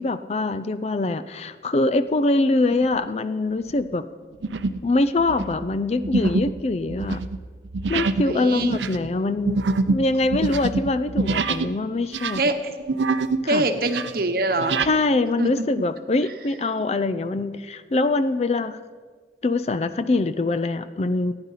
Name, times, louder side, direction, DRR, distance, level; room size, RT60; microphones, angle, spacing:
voice 1, 0.0-4.0 4.8-7.2 7.9-9.6 9.9-12.4 13.4-13.6 14.8-18.8 19.4-21.3, left 2 dB, 35° left, 12 dB, 0.4 m, -23 dB
sound 1, 2.7-3.1 3.6-3.8 4.4-4.9 5.2-11.7 12.0-13.5 13.7-14.9, right 3 dB, 90° right, 0.6 m, -26 dB
voice 2, 8.2-8.8 12.4-12.7 13.5-14.8 15.4-15.5, right 2 dB, 55° right, 7 dB, 1.0 m, -24 dB
15.0 x 9.7 x 5.6 m, 1.5 s
head